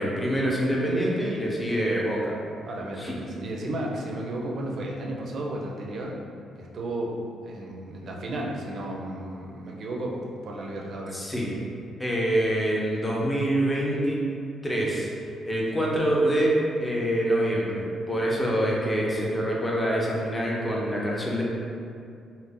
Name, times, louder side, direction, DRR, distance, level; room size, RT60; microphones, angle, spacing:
voice 1, 0.0-2.3 3.0-3.1 11.1-11.5 12.0-14.2 14.6-15.1 15.5-21.4, right 1 dB, 15° left, -4 dB, 0.6 m, -25 dB
voice 2, 2.7-6.2 6.6-7.2 7.4-11.2, right 1 dB, 60° right, -1 dB, 0.4 m, -33 dB
2.5 x 2.1 x 3.6 m, 2.4 s
cardioid pair, 90°, 0 cm